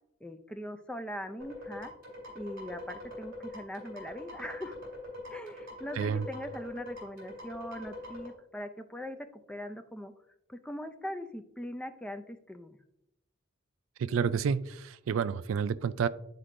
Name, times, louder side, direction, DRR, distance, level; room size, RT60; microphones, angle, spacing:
voice 1, 0.2-1.9 2.3-4.8 5.3-10.1 10.5-12.8, equal, 5° left, 7 dB, 0.3 m, -41 dB
sound 1, 1.4-8.3, left 1 dB, 50° right, 2.4 m, -43 dB
voice 2, 6.0-6.3 14.0-16.1, right 6 dB, 90° right, 15 dB, 0.3 m, -29 dB
9.8 x 4.4 x 2.5 m, 0.82 s
head